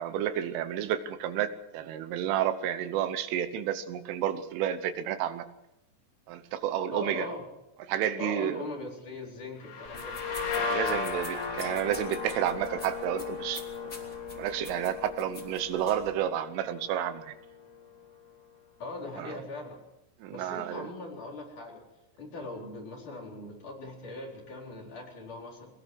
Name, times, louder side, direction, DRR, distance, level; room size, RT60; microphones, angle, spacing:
voice 1, 0.0-5.5 6.3-7.3 7.9-8.6 10.7-13.6 14.4-17.4 19.2-19.3 20.2-20.9, right 10 dB, 80° right, 11 dB, 3.5 m, -31 dB
voice 2, 6.9-7.4 8.2-10.1 18.8-19.8 20.3-21.8 22.2-25.7, left 2 dB, 40° left, -1 dB, 5.6 m, -40 dB
sound 1, 9.6-17.2, left 5 dB, 85° left, 6.0 m, -36 dB
sound 2, 9.8-16.1, left 2 dB, 15° left, 3.8 m, -47 dB
23.5 x 19.0 x 6.2 m, 0.89 s
omnidirectional pair, 5.7 m